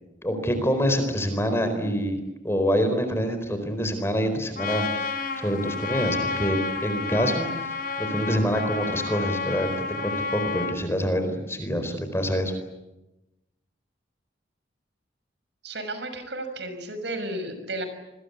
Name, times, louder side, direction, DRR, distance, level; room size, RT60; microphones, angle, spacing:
voice 1, 0.2-2.2 2.4-9.7 10.0-12.5, equal, 15° left, 8 dB, 4.3 m, -26 dB
Trumpet, 4.6-10.8, left 4 dB, 50° left, 3.6 m, -30 dB
voice 2, 15.6-17.9, right 1 dB, 70° right, 9 dB, 6.2 m, -33 dB
30.0 x 21.5 x 8.3 m, 0.95 s
head